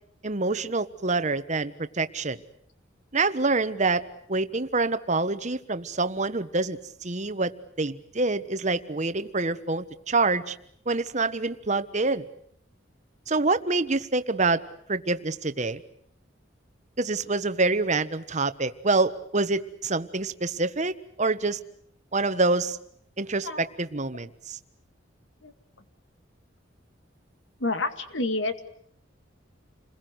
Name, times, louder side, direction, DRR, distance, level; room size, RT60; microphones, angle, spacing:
voice 1, 0.2-2.4 3.1-10.5 10.9-12.2 13.3-14.6 14.9-15.8 17.0-21.6 22.1-22.8 23.2-24.6, right 3 dB, 40° right, 12 dB, 1.3 m, -26 dB
voice 2, 27.6-28.6, left 2 dB, 75° left, 9 dB, 2.1 m, -28 dB
29.5 x 21.5 x 8.0 m, 0.66 s
head